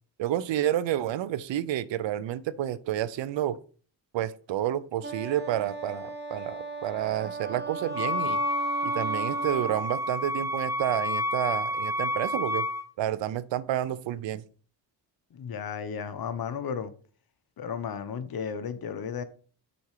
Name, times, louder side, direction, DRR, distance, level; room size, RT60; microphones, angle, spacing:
voice 1, 0.2-3.6 4.1-8.4 8.8-12.7 13.0-14.4, right 12 dB, 75° right, 0.7 m, -30 dB
Wind instrument woodwind instrument, 5.0-9.9, right 3 dB, 25° right, 1.3 m, -37 dB
Wind instrument woodwind instrument 2, 7.9-12.9, left 1 dB, 5° right, 0.6 m, -29 dB
voice 2, 15.3-16.9 17.6-19.2, left 7 dB, 50° left, 1.0 m, -34 dB
7.0 x 4.3 x 4.9 m
cardioid pair, 70°, 45 cm